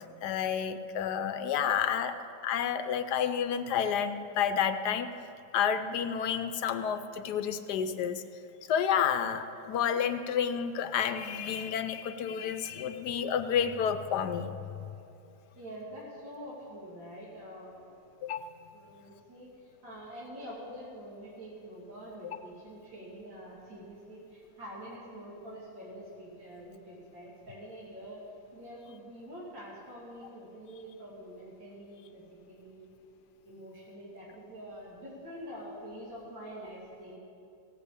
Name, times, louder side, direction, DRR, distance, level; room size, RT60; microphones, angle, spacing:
voice 1, 0.2-2.1 2.4-5.1 5.5-8.2 8.7-14.5 18.2-18.5, left 8 dB, 70° left, 9 dB, 1.1 m, -30 dB
voice 2, 15.6-17.9 18.7-19.5 19.8-28.2 28.5-32.2 32.5-32.9 33.4-37.2, equal, 75° right, -7 dB, 3.3 m, -46 dB
16.0 x 8.3 x 8.4 m, 2.6 s
omnidirectional pair, 2.0 m